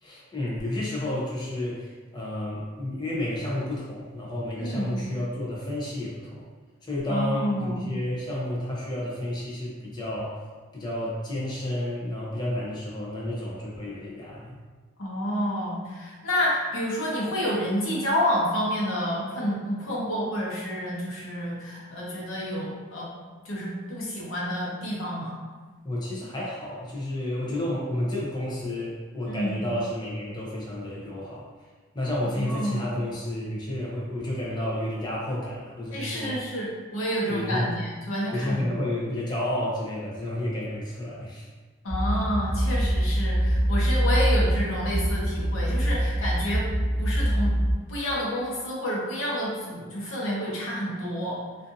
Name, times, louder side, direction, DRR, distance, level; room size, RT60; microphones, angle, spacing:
voice 1, 0.0-6.4 6.8-10.4 10.7-14.6 25.8-31.4 31.9-36.4 37.3-37.7 38.3-41.5, left 1 dB, 20° left, -5 dB, 0.5 m, -31 dB
voice 2, 4.6-4.9 7.1-7.8 15.0-23.1 23.4-25.3 29.3-29.6 32.2-32.8 35.9-38.7 41.8-46.6 47.0-47.6 47.9-51.4, equal, 85° left, -6 dB, 0.8 m, -29 dB
sound 1, 41.9-47.7, equal, 15° right, 0.6 m, -24 dB
2.5 x 2.5 x 2.5 m, 1.4 s
head